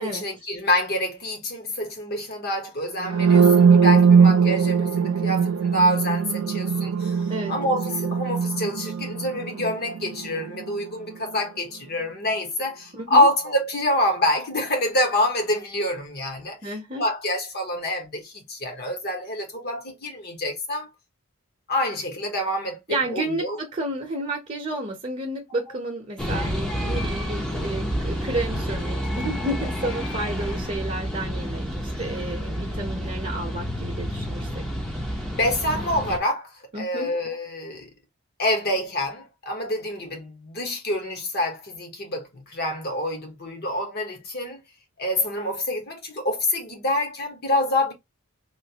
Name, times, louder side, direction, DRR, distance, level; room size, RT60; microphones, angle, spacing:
voice 1, 0.0-20.9 21.7-23.6 35.4-37.9 38.4-44.6 45.0-47.9, left 1 dB, 45° left, 1.0 m, -26 dB
sound 1, 3.0-10.9, right 6 dB, 70° right, 0.4 m, -20 dB
voice 2, 12.9-13.3 16.6-17.0 22.9-31.7 32.0-34.6 36.7-37.1, right 2 dB, 30° right, 0.8 m, -31 dB
sound 2, 26.2-36.2, equal, 5° left, 0.6 m, -29 dB
3.1 x 2.5 x 2.8 m
head